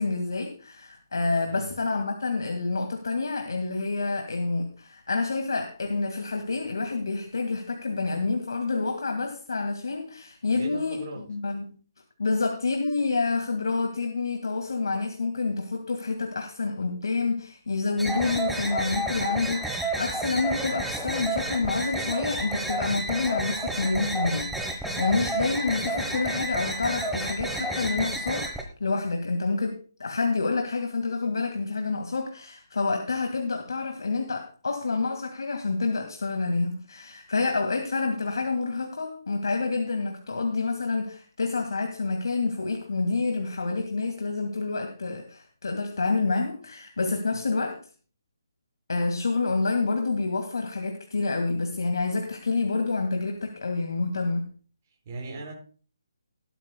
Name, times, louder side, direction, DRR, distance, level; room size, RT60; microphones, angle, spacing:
voice 1, 0.0-11.7 12.2-28.5 28.8-47.8 48.9-54.5, left 3 dB, 75° left, 5 dB, 2.0 m, -28 dB
voice 2, 1.4-1.7 10.5-11.2 25.0-25.2 47.3-47.4 55.1-55.5, right 2 dB, 30° right, -1 dB, 7.7 m, -39 dB
sound 1, 18.0-28.6, right 1 dB, ahead, 1.1 m, -31 dB
17.5 x 12.0 x 2.3 m, 0.39 s
hypercardioid pair, 160°, 2 cm